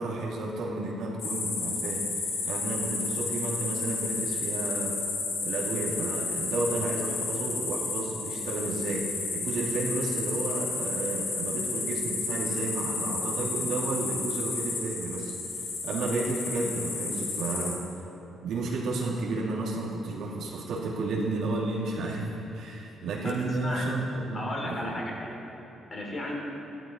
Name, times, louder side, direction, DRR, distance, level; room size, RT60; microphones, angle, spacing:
voice 1, 0.0-4.9 5.4-17.8 18.4-22.3 22.5-25.0, right 2 dB, 80° right, -4 dB, 2.6 m, -32 dB
sound 1, 1.2-17.7, left 4 dB, 70° left, 2.5 m, -32 dB
voice 2, 23.2-23.9 24.3-25.4 25.9-26.4, left 1 dB, 35° left, -2 dB, 3.1 m, -34 dB
13.5 x 12.5 x 4.4 m, 3.0 s
cardioid pair, 90°, 0 cm